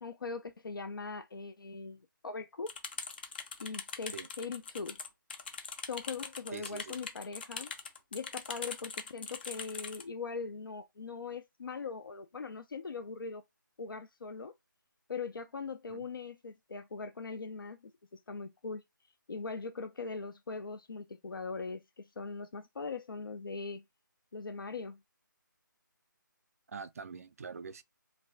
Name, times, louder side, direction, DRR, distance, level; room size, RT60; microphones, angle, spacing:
voice 1, 0.0-2.7 3.6-5.0 5.9-7.7 8.1-13.4 13.8-14.5 15.1-18.8 19.3-23.8 24.3-25.0, left 4 dB, 90° left, 0.4 m, -41 dB
sound 1, 2.7-10.0, left 5 dB, 30° left, 0.4 m, -42 dB
voice 2, 6.5-7.0 15.9-16.1 26.7-27.8, right 5 dB, 45° right, 0.4 m, -44 dB
3.0 x 2.5 x 3.2 m
figure-of-eight pair, 160°, 11 cm